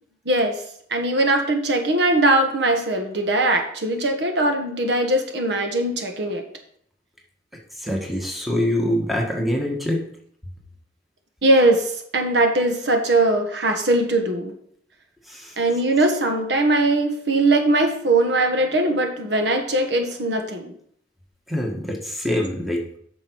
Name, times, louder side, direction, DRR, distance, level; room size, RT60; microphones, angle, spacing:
voice 1, 0.2-0.6 0.9-6.4 11.4-14.5 15.6-20.7, right 2 dB, 70° right, 4 dB, 1.3 m, -20 dB
voice 2, 7.8-10.0 15.3-15.5 21.5-22.8, left 1 dB, ahead, -1 dB, 1.5 m, -24 dB
8.9 x 6.1 x 4.6 m, 0.65 s
head